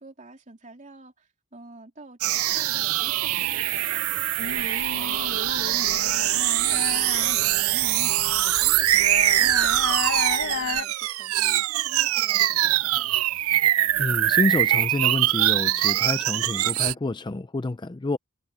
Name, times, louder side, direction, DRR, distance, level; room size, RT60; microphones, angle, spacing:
voice 1, 0.0-4.1 4.8-7.9 8.6-13.1, right 2 dB, 35° right, 3.4 m, -49 dB
sound 1, 2.2-16.9, right 14 dB, 70° right, 0.4 m, -23 dB
sound 2, 4.4-10.8, left 5 dB, 55° left, 1.1 m, -33 dB
voice 2, 14.0-18.2, left 2 dB, 20° left, 0.4 m, -28 dB
head